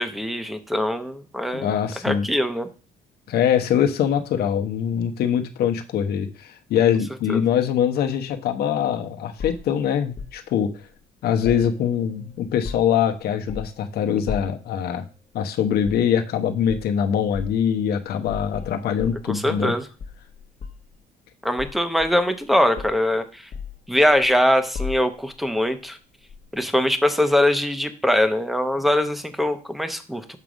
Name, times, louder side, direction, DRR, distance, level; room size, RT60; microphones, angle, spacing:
voice 1, 0.0-1.7 2.0-2.7 7.3-7.4 19.2-19.9 21.4-23.5 23.9-26.0 26.5-30.4, left 1 dB, ahead, 9 dB, 0.8 m, -22 dB
voice 2, 1.5-2.3 3.3-10.7 11.2-15.0 15.3-19.7, left 8 dB, 70° left, 6 dB, 1.0 m, -23 dB
sound 1, 9.4-10.4 11.4-12.2 12.5-13.1 13.5-13.8 14.3-14.7 15.8-16.1 16.7-16.9 17.3-17.6 18.3-19.7 20.0-20.9 21.6-22.4 22.8-23.1 23.5-24.3 24.7-25.4 26.3-26.5, left 6 dB, 45° left, 1.0 m, -36 dB
6.6 x 3.6 x 6.1 m, 0.35 s
cardioid pair, 110°, 17 cm